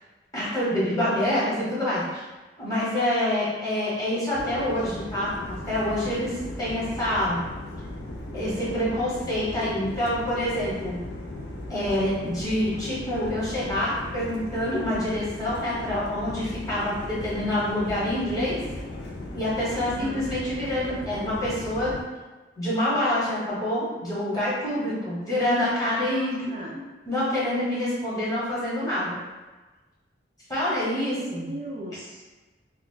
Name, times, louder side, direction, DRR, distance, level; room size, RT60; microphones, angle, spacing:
voice 1, 0.3-2.2 2.6-5.3 5.7-7.4 8.3-11.0 11.7-18.6 19.3-21.9 22.6-26.4 27.1-29.1 30.5-31.5, left 1 dB, 20° left, -9 dB, 1.1 m, -26 dB
sound 1, 4.3-22.0, left 1 dB, 65° left, 0.5 m, -37 dB
voice 2, 19.8-20.2 26.1-26.8 31.0-32.2, right 1 dB, 30° right, -4 dB, 0.3 m, -38 dB
2.4 x 2.3 x 3.7 m, 1.2 s
head